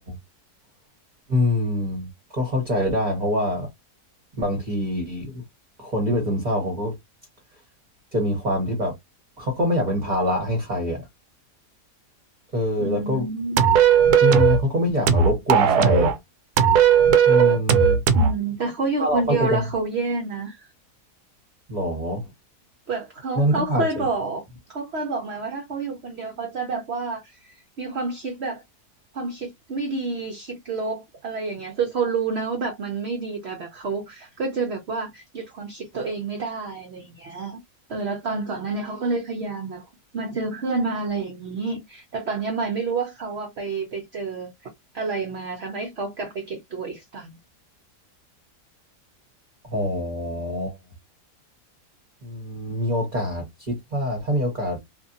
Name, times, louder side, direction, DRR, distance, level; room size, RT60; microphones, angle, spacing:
voice 1, 1.3-3.7 4.4-5.4 5.8-6.9 8.1-9.0 9.4-11.1 12.5-13.3 14.2-16.1 17.3-18.0 19.0-19.6 21.7-22.3 23.3-24.1 49.6-50.8 52.2-54.8, left 1 dB, 30° right, 1.0 m, -24 dB
voice 2, 12.8-13.6 18.1-20.7 22.9-24.4 24.7-28.6 29.1-37.6 37.9-39.8 40.1-44.5 44.9-47.4, right 4 dB, 55° right, 0.8 m, -29 dB
sound 1, 13.6-14.6 15.1-16.2 16.6-18.3, right 7 dB, 80° right, 1.1 m, -16 dB
2.6 x 2.6 x 2.5 m
omnidirectional pair, 1.7 m